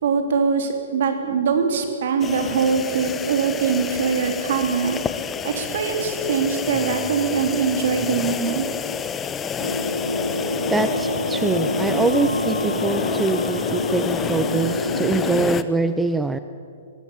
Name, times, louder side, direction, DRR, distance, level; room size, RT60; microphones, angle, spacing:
voice 1, 0.0-5.0 5.4-8.6, right 6 dB, 55° right, 5 dB, 3.4 m, -22 dB
sound 1, 2.2-15.6, left 7 dB, 15° left, 0.9 m, -29 dB
sound 2, 9.6-15.4, left 1 dB, 90° left, 0.9 m, -26 dB
voice 2, 10.7-16.4, right 3 dB, 10° right, 11 dB, 0.6 m, -24 dB
22.5 x 17.0 x 8.5 m, 2.5 s
figure-of-eight pair, 115°, 0 cm